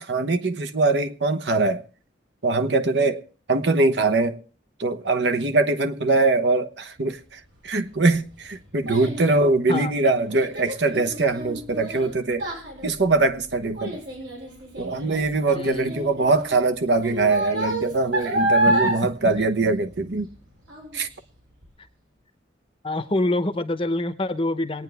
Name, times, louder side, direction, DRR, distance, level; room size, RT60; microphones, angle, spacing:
voice 1, 0.0-1.8 2.4-4.4 4.8-12.5 12.8-14.0 14.8-20.3 20.9-21.1, right 3 dB, 65° right, 1.0 m, -22 dB
Child speech kid speaking, 7.7-20.3 20.7-21.1 21.6-21.7, right 1 dB, 85° right, 6.3 m, -29 dB
voice 2, 15.5-16.0 18.7-18.9 19.3-19.5 22.8-24.8, left 1 dB, 30° left, 0.8 m, -26 dB
22.5 x 9.3 x 3.4 m
head